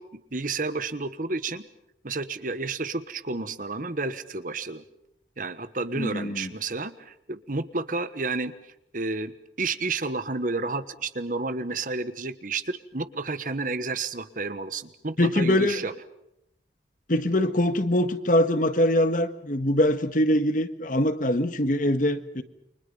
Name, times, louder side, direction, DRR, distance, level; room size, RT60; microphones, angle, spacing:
voice 1, 0.0-1.7 2.0-4.8 5.4-8.5 8.9-15.9, right 3 dB, 45° right, 12 dB, 1.3 m, -31 dB
voice 2, 6.0-6.5 15.2-15.8 17.1-22.4, left 1 dB, 45° left, 10 dB, 1.6 m, -23 dB
29.5 x 24.5 x 5.5 m, 0.81 s
head